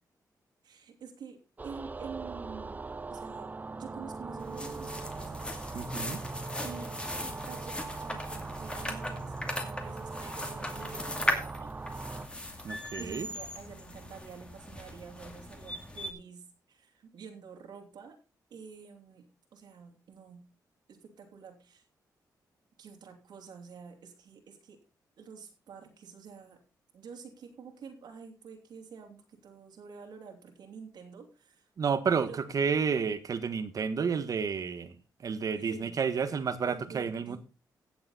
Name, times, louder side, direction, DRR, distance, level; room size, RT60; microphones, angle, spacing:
voice 1, 0.6-2.8 3.1-5.5 6.6-6.9 7.5-11.7 13.0-18.2 18.5-19.3 19.5-20.4 20.9-21.8 22.8-24.8 25.2-26.6 26.9-31.7 32.2-32.4 35.5-36.0 36.7-37.4, right 6 dB, 75° right, 3.1 m, -48 dB
sound 1, 1.6-12.3, right 3 dB, 25° right, 0.4 m, -40 dB
sound 2, 4.4-16.1, left 1 dB, 15° left, 2.4 m, -38 dB
voice 2, 5.7-6.2 12.6-13.3 31.8-34.9 35.2-37.4, right 6 dB, 55° right, 1.5 m, -30 dB
16.0 x 7.1 x 4.1 m
cardioid pair, 95°, 7 cm